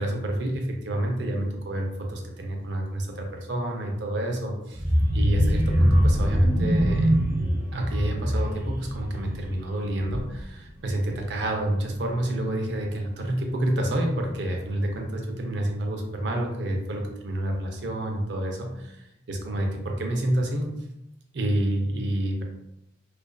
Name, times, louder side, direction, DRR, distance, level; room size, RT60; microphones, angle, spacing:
voice 1, 0.0-4.8 5.1-7.1 7.7-20.7 21.3-22.4, right 1 dB, 70° right, 2 dB, 0.5 m, -28 dB
sound 1, 4.7-10.5 10.9-11.2 11.5-11.6, equal, 10° right, 0.6 m, -23 dB
2.4 x 2.3 x 2.2 m, 0.83 s
head